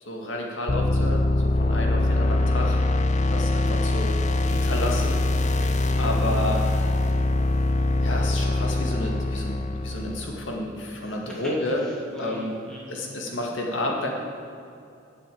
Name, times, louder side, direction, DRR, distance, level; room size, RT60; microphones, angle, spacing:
voice 1, 0.1-2.8 3.3-4.1 4.5-5.2 6.0-6.6 8.0-9.6 9.8-11.8 12.2-12.5 12.9-14.1, left 1 dB, 85° left, 0 dB, 2.1 m, -30 dB
sound 1, 0.7-10.5, left 2 dB, 40° left, 0.6 m, -23 dB
voice 2, 4.4-4.8 5.4-5.8 11.0-11.5 11.8-13.0, equal, 5° left, -5 dB, 2.7 m, -43 dB
9.3 x 8.4 x 8.8 m, 2.6 s
head